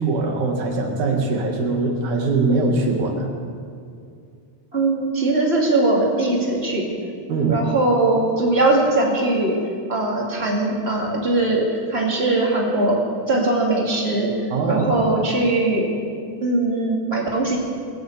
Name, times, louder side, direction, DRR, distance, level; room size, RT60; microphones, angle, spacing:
voice 1, 0.0-3.3 7.3-7.6 14.5-15.1, right 3 dB, 75° right, 2 dB, 3.2 m, -22 dB
voice 2, 4.7-6.9 7.5-9.5 9.9-14.3 14.7-15.9 16.4-17.6, right 2 dB, 20° right, -2 dB, 2.5 m, -20 dB
21.0 x 7.9 x 8.1 m, 2.4 s
omnidirectional pair, 3.5 m